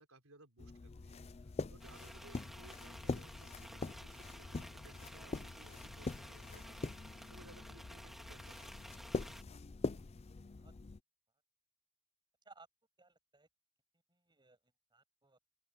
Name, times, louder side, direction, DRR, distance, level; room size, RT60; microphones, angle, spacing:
voice 1, 0.0-8.9, right 2 dB, 75° right, 4.0 m, -62 dB
sound 1, 0.6-11.0, left 3 dB, 30° left, 0.4 m, -44 dB
sound 2, 1.8-9.4, equal, ahead, 1.9 m, -54 dB
voice 2, 13.0-13.5 14.1-15.4, right 3 dB, 20° right, 6.9 m, -63 dB
open air
head